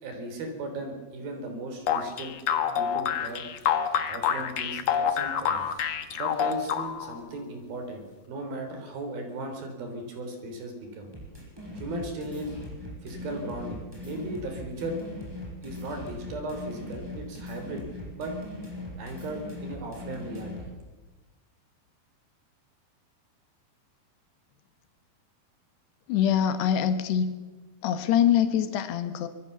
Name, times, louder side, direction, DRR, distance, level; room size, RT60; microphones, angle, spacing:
voice 1, 0.0-2.3 2.8-3.4 4.1-5.7 6.1-11.1 11.7-12.5 13.0-15.0 15.6-17.9 18.1-18.3 19.0-20.5, right 2 dB, 65° right, 5 dB, 5.6 m, -37 dB
sound 1, 1.9-7.2, left 8 dB, 60° left, 1.7 m, -27 dB
sound 2, 11.1-20.7, left 1 dB, 5° right, 6.1 m, -40 dB
voice 2, 26.1-27.3 27.8-29.3, left 9 dB, 85° left, 10 dB, 3.3 m, -24 dB
25.0 x 21.5 x 7.0 m, 1.2 s
omnidirectional pair, 4.7 m